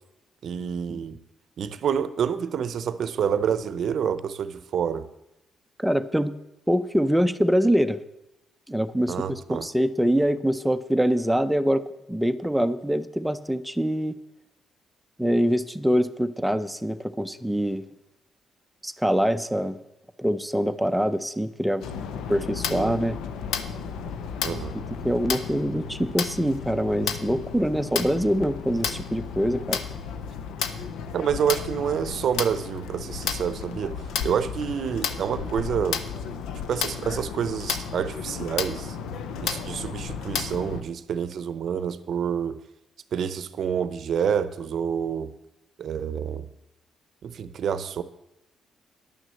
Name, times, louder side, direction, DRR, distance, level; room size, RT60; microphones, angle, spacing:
voice 1, 0.4-1.2 1.6-5.1 9.1-9.7 22.7-23.0 24.4-24.7 31.1-36.1 36.7-39.0 39.4-42.6 43.1-45.3 45.8-46.5 47.2-48.0, right 8 dB, 65° right, 14 dB, 0.7 m, -28 dB
voice 2, 5.8-6.3 6.7-8.0 8.7-14.2 15.2-17.8 18.8-19.8 20.2-21.8 22.3-23.2 24.7-29.8, equal, 5° right, 10 dB, 0.6 m, -24 dB
sound 1, 21.8-40.8, left 6 dB, 85° left, 0.7 m, -33 dB
11.0 x 6.3 x 7.6 m, 0.89 s
cardioid pair, 90°, 0 cm